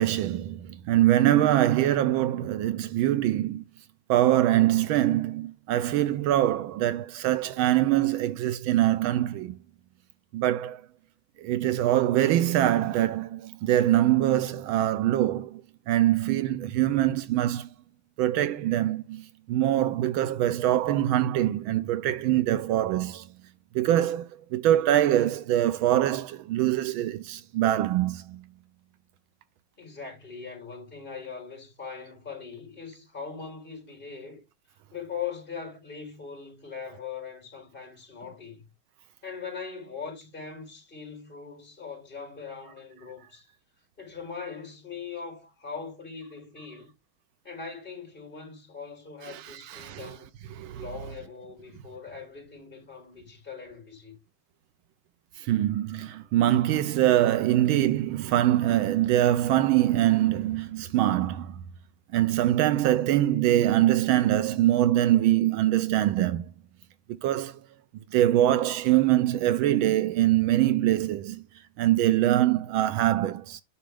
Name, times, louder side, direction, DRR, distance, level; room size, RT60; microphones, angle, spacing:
voice 1, 0.0-3.6 4.1-9.6 10.3-10.8 11.4-15.6 15.9-17.7 18.2-23.3 23.7-28.4 49.3-50.2 50.6-50.9 55.4-61.6 62.1-66.4 67.1-67.6 68.1-71.5 71.8-73.6, right 13 dB, 80° right, 1.4 m, -23 dB
voice 2, 29.8-34.4 34.9-38.6 39.2-43.5 44.0-46.9 47.4-50.3 50.8-54.2, left 6 dB, 25° left, 5.2 m, -40 dB
8.9 x 5.9 x 3.4 m
omnidirectional pair, 2.3 m